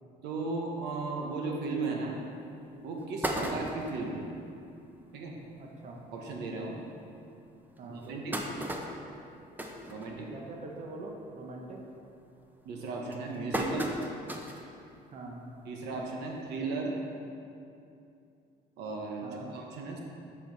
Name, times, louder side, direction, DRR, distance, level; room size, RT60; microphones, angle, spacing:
voice 1, 0.2-2.2 2.8-4.3 5.1-5.4 6.1-6.8 7.8-8.4 9.9-10.3 12.6-13.9 15.6-16.9 18.8-20.0, right 3 dB, 85° right, 0 dB, 1.0 m, -36 dB
sound 1, 2.1-2.2 2.7-2.8 3.0-4.1 4.6-4.7 5.0-5.1 5.4-5.6 6.3-6.4 6.9-7.0 7.8-10.6 11.0-11.3 11.6-12.0 12.7-14.7 15.1-15.2 16.4-16.5, equal, 10° right, 0.6 m, -36 dB
voice 2, 5.6-6.0 7.8-8.2 10.3-11.8 15.1-15.4 19.2-19.5, right 2 dB, 45° right, 0 dB, 0.8 m, -43 dB
6.8 x 5.6 x 3.9 m, 2.6 s
cardioid pair, 110°, 17 cm